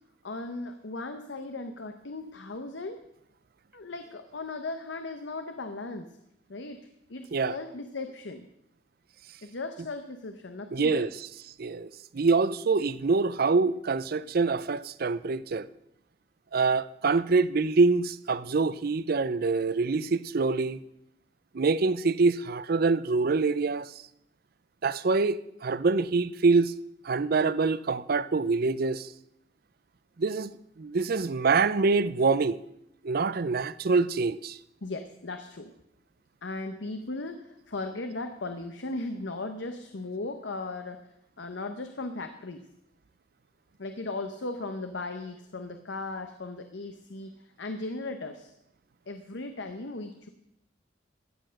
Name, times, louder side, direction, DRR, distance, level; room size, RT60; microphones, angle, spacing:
voice 1, 0.2-3.0 3.7-6.0 6.5-8.5 9.4-11.1 34.8-35.7 36.4-41.0 41.4-42.6 43.8-48.5 49.1-50.3, left 2 dB, 85° left, 0.9 m, -37 dB
voice 2, 10.7-11.1 11.6-15.7 16.5-20.8 21.5-23.9 24.8-26.7 27.0-29.1 30.2-30.5 30.8-32.6 33.0-34.6, right 4 dB, 55° right, 0.5 m, -25 dB
15.0 x 7.9 x 6.4 m
head